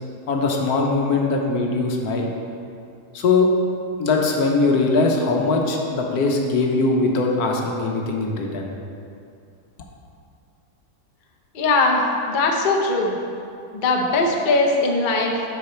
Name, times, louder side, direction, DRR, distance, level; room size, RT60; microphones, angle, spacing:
voice 1, 0.3-2.3 3.1-3.5 4.0-8.7, left 3 dB, 70° left, 1 dB, 1.3 m, -21 dB
voice 2, 11.5-13.2 13.7-15.4, left 2 dB, 45° left, 0 dB, 0.7 m, -20 dB
7.9 x 5.6 x 4.3 m, 2.5 s
omnidirectional pair, 1.7 m